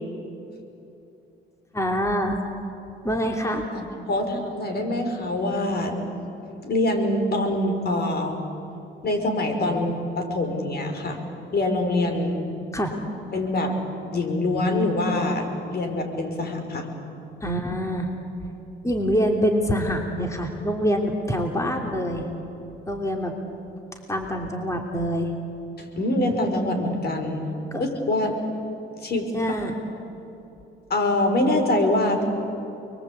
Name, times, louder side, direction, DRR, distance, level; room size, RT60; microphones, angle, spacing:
voice 1, 1.7-2.4 3.0-3.7 12.7-12.9 17.4-18.1 18.8-22.3 22.9-23.3 24.1-25.3 27.7-27.8 29.3-29.7, equal, 15° left, 2 dB, 3.2 m, -25 dB
voice 2, 3.7-6.1 6.6-8.4 9.0-11.2 11.5-12.4 13.3-13.8 14.1-16.9 25.8-27.4 27.8-28.4 29.0-29.3 30.9-32.2, left 1 dB, 55° left, 5 dB, 5.0 m, -24 dB
29.5 x 22.5 x 8.6 m, 2.8 s
cardioid pair, 90°, 20 cm